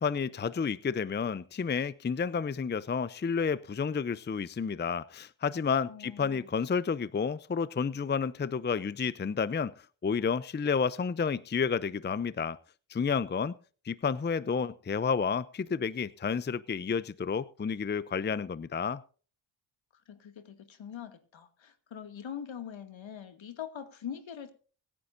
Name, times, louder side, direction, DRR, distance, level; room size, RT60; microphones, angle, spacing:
voice 1, 0.0-12.6 12.9-13.5 13.8-19.0, left 6 dB, 25° left, 0.6 m, -30 dB
voice 2, 5.9-6.5 20.1-24.5, left 8 dB, 70° left, 2.3 m, -43 dB
24.0 x 9.9 x 2.6 m
cardioid pair, 65°, 48 cm